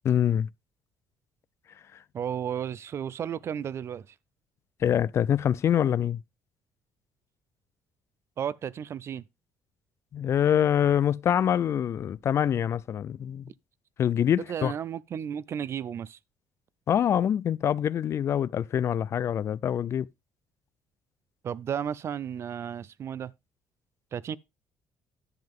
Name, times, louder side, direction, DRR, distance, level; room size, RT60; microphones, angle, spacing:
voice 1, 0.0-0.5 4.8-6.2 10.1-13.4 14.0-14.7 16.9-20.1, left 9 dB, 50° left, 0.4 m, -25 dB
voice 2, 2.1-4.1 8.4-9.3 14.4-16.2 21.4-23.3 24.1-24.4, right 8 dB, 45° right, 0.5 m, -33 dB
10.5 x 7.5 x 3.6 m
cardioid pair, 100°, 6 cm